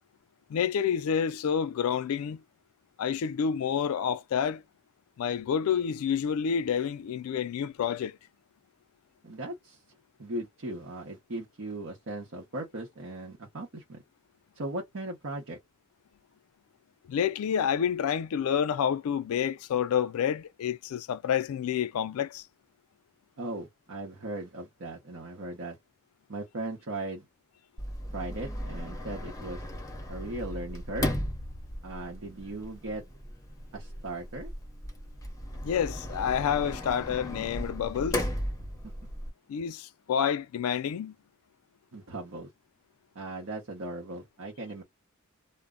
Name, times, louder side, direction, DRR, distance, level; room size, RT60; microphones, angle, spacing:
voice 1, 0.5-2.4 3.0-4.6 5.2-8.2 17.1-22.5 35.6-38.3 39.5-41.1, left 8 dB, 80° left, 0.3 m, -29 dB
voice 2, 9.2-9.8 10.2-14.0 14.5-15.6 23.4-25.8 26.3-27.3 28.1-29.6 30.1-31.1 31.8-33.0 33.7-34.5 38.8-38.9 41.9-42.5 43.1-44.8, right 2 dB, 65° right, 0.8 m, -38 dB
Sliding door, 27.8-39.3, left 1 dB, 15° left, 0.8 m, -36 dB
2.1 x 2.0 x 3.6 m
head